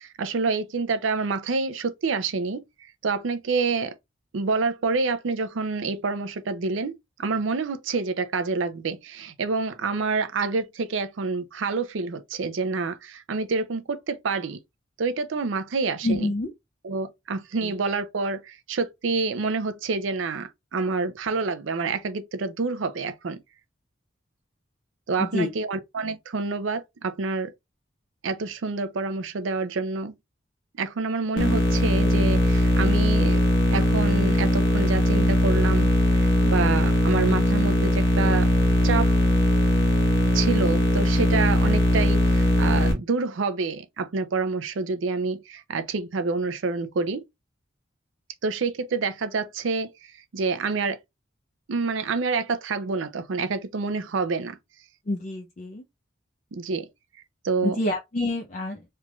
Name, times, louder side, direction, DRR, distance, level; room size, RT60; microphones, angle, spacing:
voice 1, 0.0-2.6 3.0-3.9 4.3-14.6 15.0-16.3 16.8-23.4 25.1-27.5 28.2-30.1 30.7-33.4 33.7-38.5 38.8-39.1 40.3-47.2 48.4-49.9 50.3-51.0 51.7-54.6 56.5-56.9 57.4-57.8, right 4 dB, 75° right, 0.5 m, -27 dB
voice 2, 16.0-16.5 17.6-17.7 25.2-25.5 55.1-55.8 57.6-58.8, left 2 dB, 40° left, 0.5 m, -27 dB
sound 1, 31.4-42.9, left 1 dB, 65° left, 1.1 m, -20 dB
3.3 x 3.1 x 2.3 m
head